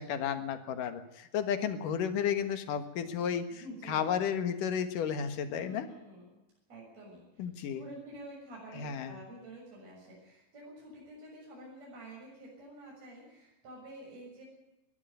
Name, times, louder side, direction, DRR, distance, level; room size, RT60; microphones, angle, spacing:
voice 1, 0.0-5.9 7.4-7.8 8.8-9.2, left 8 dB, 75° left, 9 dB, 3.1 m, -33 dB
voice 2, 3.5-4.1 5.6-6.4 6.7-7.4 7.7-14.4, right 1 dB, 50° right, -3 dB, 8.1 m, -49 dB
21.0 x 13.5 x 9.3 m, 0.96 s
omnidirectional pair, 3.9 m